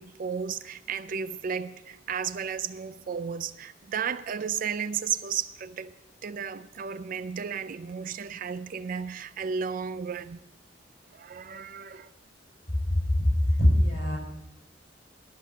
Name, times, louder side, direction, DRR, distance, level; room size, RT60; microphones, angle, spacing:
voice 1, 0.0-5.9 6.2-10.4 11.1-12.1, right 7 dB, 50° right, 0.4 m, -33 dB
voice 2, 12.9-14.2, left 1 dB, 45° left, 5.0 m, -22 dB
12.5 x 6.6 x 7.0 m
head